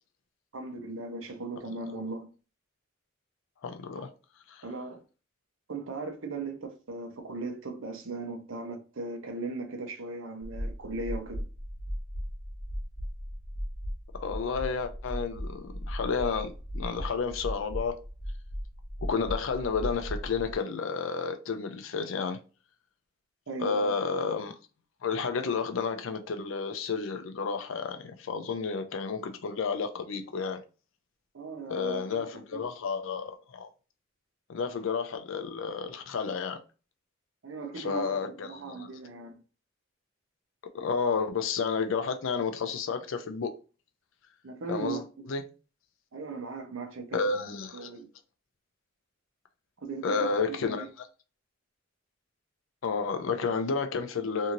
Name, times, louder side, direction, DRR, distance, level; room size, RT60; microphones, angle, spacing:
voice 1, 0.5-2.3 4.6-5.0 5.7-11.5 23.5-23.9 31.3-32.7 37.4-38.1 38.4-39.4 44.4-45.3 46.1-47.2 47.7-48.1 49.8-50.9, right 3 dB, 75° right, 0.7 m, -38 dB
voice 2, 3.6-4.1 4.5-4.6 14.1-17.9 19.0-22.4 23.6-24.6 25.0-30.6 31.7-33.7 34.5-36.6 37.8-38.9 40.7-43.5 44.7-45.4 47.1-47.9 50.0-51.1 52.8-54.5, left 5 dB, 70° left, 0.4 m, -31 dB
sound 1, 10.4-20.5, equal, 45° left, 1.4 m, -37 dB
2.7 x 2.5 x 2.9 m
head